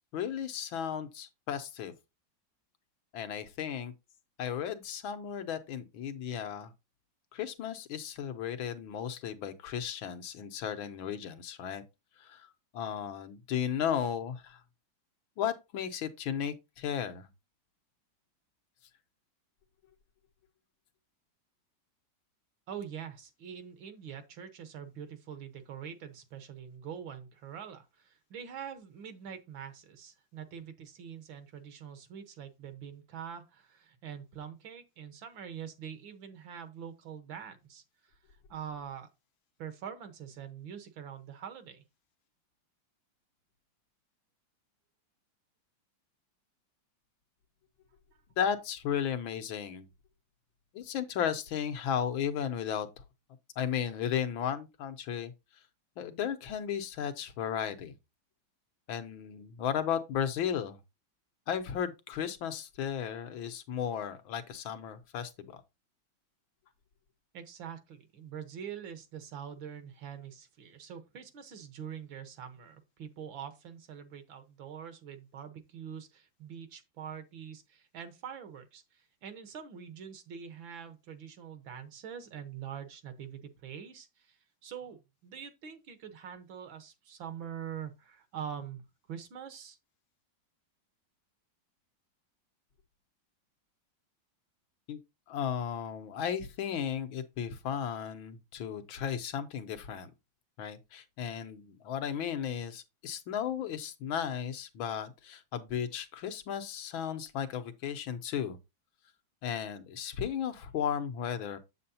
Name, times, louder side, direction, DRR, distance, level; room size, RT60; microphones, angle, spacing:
voice 1, 0.1-1.9 3.1-3.9 4.4-6.7 7.3-11.8 12.2-12.5 12.7-14.6 15.4-17.3 48.4-49.9 50.7-52.9 53.6-55.3 56.0-58.0 58.9-60.8 61.5-65.6 94.9-95.0 95.3-100.1 100.6-108.6 109.4-111.6, left 8 dB, 85° left, 1.8 m, -35 dB
voice 2, 22.7-38.2 38.5-39.1 39.6-41.8 67.3-88.8 89.1-89.8, right 8 dB, 75° right, 1.9 m, -44 dB
7.7 x 7.5 x 2.8 m
omnidirectional pair, 2.1 m